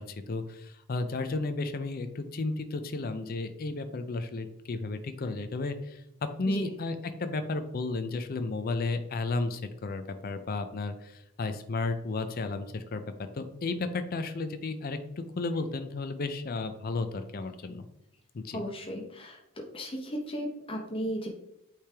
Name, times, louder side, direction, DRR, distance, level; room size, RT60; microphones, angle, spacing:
voice 1, 0.0-6.0 6.4-13.0 13.3-17.9 18.3-18.6, left 3 dB, 45° left, 9 dB, 0.4 m, -33 dB
voice 2, 18.5-19.4 19.7-21.3, equal, 25° left, 0 dB, 0.8 m, -35 dB
8.6 x 3.3 x 3.4 m, 0.81 s
head